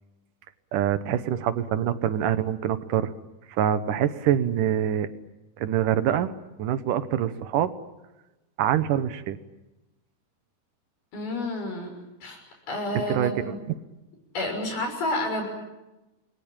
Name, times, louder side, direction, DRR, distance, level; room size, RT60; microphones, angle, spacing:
voice 1, 0.7-3.1 3.5-5.1 5.6-6.3 6.6-7.7 8.6-9.4 12.9-13.5, right 10 dB, 70° right, 12 dB, 2.4 m, -25 dB
voice 2, 11.1-11.9 12.2-12.4 12.7-13.6 14.3-15.4, left 1 dB, 80° left, 2 dB, 8.2 m, -30 dB
29.0 x 22.0 x 8.9 m, 1.0 s
omnidirectional pair, 4.3 m